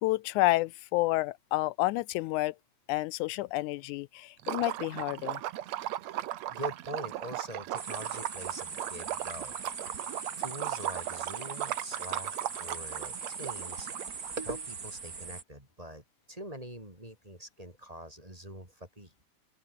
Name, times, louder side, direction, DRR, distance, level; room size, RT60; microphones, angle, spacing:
voice 1, 0.0-2.6 2.9-5.4, left 18 dB, 85° left, 2.0 m, -29 dB
Liquid, 4.4-14.3, right 14 dB, 70° right, 2.1 m, -37 dB
voice 2, 6.5-9.6 10.4-13.9 14.4-19.1, right 1 dB, 10° right, 4.0 m, -44 dB
sound 1, 7.8-15.4, right 5 dB, 30° right, 2.6 m, -40 dB
open air
omnidirectional pair, 3.5 m